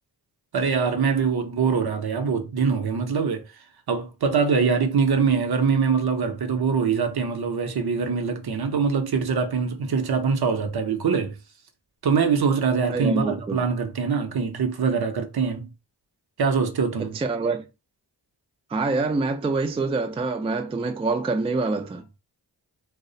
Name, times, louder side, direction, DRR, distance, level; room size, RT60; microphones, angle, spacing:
voice 1, 0.5-3.5 3.9-11.4 12.0-15.7 16.4-17.2, right 5 dB, 55° right, 0.6 m, -23 dB
voice 2, 12.9-13.6 17.0-17.6 18.7-22.0, right 3 dB, 15° right, 0.3 m, -26 dB
2.3 x 2.1 x 2.6 m
cardioid pair, 40°, 44 cm